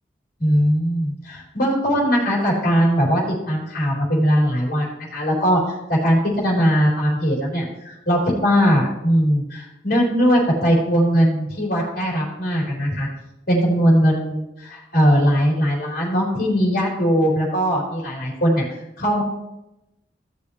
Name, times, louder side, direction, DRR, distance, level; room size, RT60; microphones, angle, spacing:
voice 1, 0.4-3.2 3.5-5.6 5.9-13.1 13.5-18.6 19.0-19.2, equal, 55° left, -3 dB, 4.2 m, -20 dB
16.5 x 6.9 x 3.2 m, 0.92 s
head